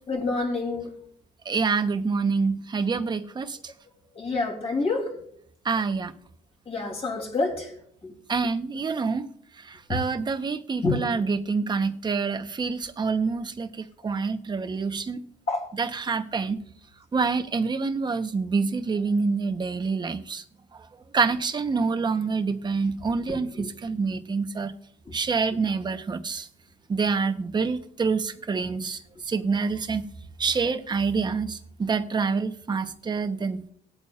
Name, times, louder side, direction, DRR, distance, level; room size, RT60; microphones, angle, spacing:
voice 1, 0.1-0.9 4.1-5.1 6.7-7.7 8.0-8.1 9.9-10.0 10.8-11.0 15.5-15.7 23.3-23.7, left 3 dB, 35° left, 1 dB, 3.1 m, -28 dB
voice 2, 1.4-3.6 5.6-6.1 8.3-9.3 9.6-15.2 15.7-16.6 17.1-20.4 21.1-24.7 25.1-26.5 26.9-29.0 29.3-30.1 30.4-33.7, right 4 dB, 25° right, 9 dB, 0.9 m, -27 dB
20.0 x 8.5 x 2.4 m, 0.62 s
cardioid pair, 110°, 17 cm